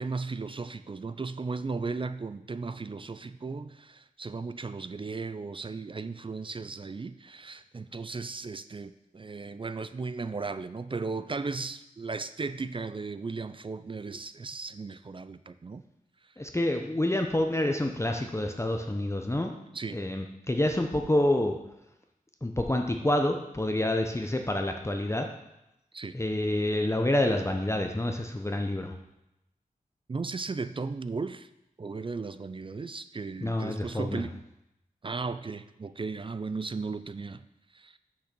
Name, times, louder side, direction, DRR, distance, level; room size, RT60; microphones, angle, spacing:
voice 1, 0.0-15.8 19.7-20.0 25.9-26.2 30.1-31.5 31.8-34.4 35.0-37.4 37.7-38.0, right 4 dB, 35° right, 12 dB, 0.4 m, -36 dB
voice 2, 16.4-19.6 19.9-21.6 22.4-25.3 26.1-28.9 33.4-34.2, left 1 dB, 20° left, 4 dB, 0.7 m, -28 dB
6.5 x 5.8 x 6.0 m, 0.87 s
wide cardioid pair, 60°, 15 cm